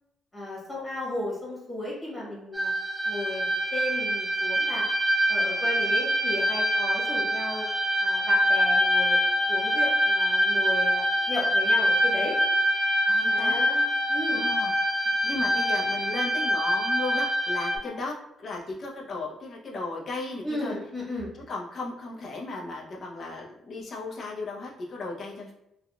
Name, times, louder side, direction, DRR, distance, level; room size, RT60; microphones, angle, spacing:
voice 1, 0.3-2.7 3.0-4.9 5.3-7.7 8.0-9.2 9.5-11.0 11.3-12.4 13.3-14.4 20.4-21.3, left 1 dB, 20° left, -6 dB, 1.4 m, -34 dB
sound 1, 2.5-17.8, equal, 25° right, 0.4 m, -25 dB
voice 2, 13.0-13.6 14.3-20.7 21.3-25.5, left 3 dB, 50° left, -1 dB, 0.7 m, -36 dB
3.5 x 2.3 x 2.3 m, 0.83 s
cardioid pair, 90°, 0 cm